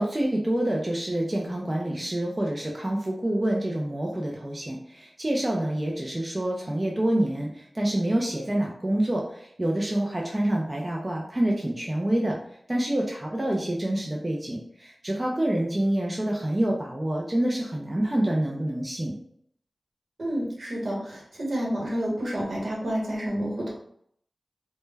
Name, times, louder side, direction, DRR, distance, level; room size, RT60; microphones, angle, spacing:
voice 1, 0.0-12.4 12.7-19.1, right 1 dB, 25° right, -2 dB, 0.4 m, -27 dB
voice 2, 20.2-23.7, equal, 70° right, -3 dB, 0.9 m, -29 dB
2.1 x 2.1 x 3.2 m, 0.67 s
wide cardioid pair, 70°, 0 cm